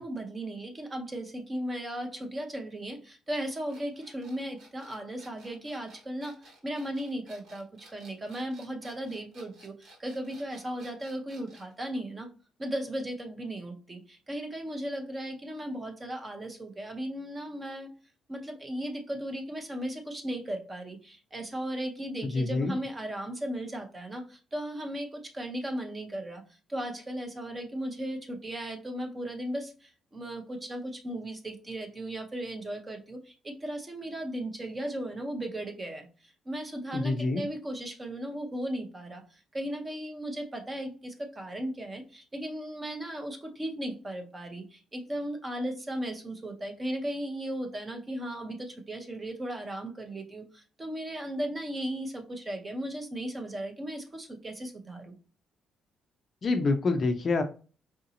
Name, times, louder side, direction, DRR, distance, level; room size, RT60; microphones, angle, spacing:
voice 1, 0.0-12.3 12.6-17.9 18.3-26.4 26.7-55.1, right 1 dB, 15° right, 4 dB, 0.6 m, -36 dB
sound 1, 3.7-11.7, right 2 dB, 70° right, 1.5 m, -55 dB
voice 2, 22.2-22.8 36.9-37.5 56.4-57.4, left 3 dB, 30° left, 7 dB, 0.4 m, -27 dB
4.8 x 2.6 x 2.7 m, 0.36 s
cardioid pair, 170°, 0 cm